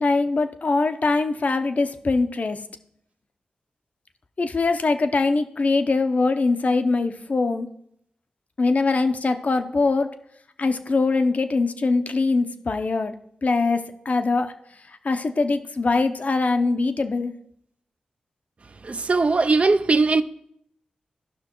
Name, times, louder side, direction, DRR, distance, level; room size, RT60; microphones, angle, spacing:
voice 1, 0.0-2.6 4.4-7.7 8.6-10.1 10.6-13.1 13.4-13.8 14.1-14.5 15.0-17.3, left 3 dB, 55° left, 0.7 m, -22 dB
voice 2, 18.8-20.2, right 3 dB, 45° right, 0.5 m, -19 dB
13.0 x 5.8 x 3.0 m
cardioid pair, 40°, 3 cm